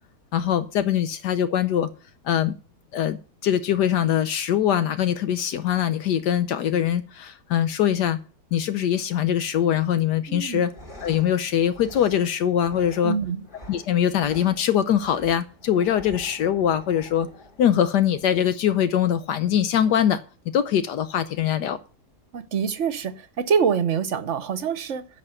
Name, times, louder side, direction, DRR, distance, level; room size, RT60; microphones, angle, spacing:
voice 1, 0.3-1.9 2.2-2.6 2.9-3.2 3.4-8.2 8.5-10.7 11.0-13.2 13.7-17.3 17.6-21.8, left 10 dB, 80° left, 1.3 m, -22 dB
voice 2, 10.3-10.6 13.0-13.4 22.3-25.1, right 6 dB, 50° right, 1.1 m, -25 dB
sound 1, 10.5-18.5, left 1 dB, 30° left, 3.0 m, -47 dB
10.5 x 6.0 x 7.7 m
omnidirectional pair, 1.8 m